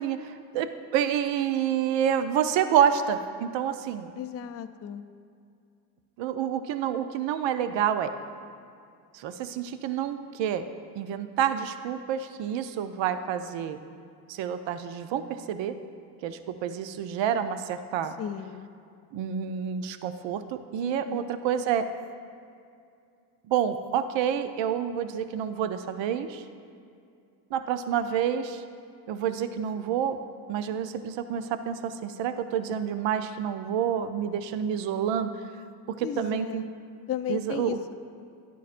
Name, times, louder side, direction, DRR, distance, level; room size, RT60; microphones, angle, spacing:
voice 1, 0.0-4.1 6.2-8.1 9.1-10.6 11.0-13.8 14.3-15.8 16.2-18.1 19.1-21.9 23.5-26.4 27.5-28.6 29.1-30.2 30.5-35.3 35.9-36.6 37.3-37.8, right 9 dB, 70° right, 10 dB, 0.6 m, -28 dB
voice 2, 4.2-5.0 18.2-18.7 20.8-21.3 36.0-36.7 37.1-37.9, left 9 dB, 35° left, 7 dB, 0.4 m, -35 dB
11.5 x 9.2 x 2.5 m, 2.4 s
supercardioid pair, 65°, 46 cm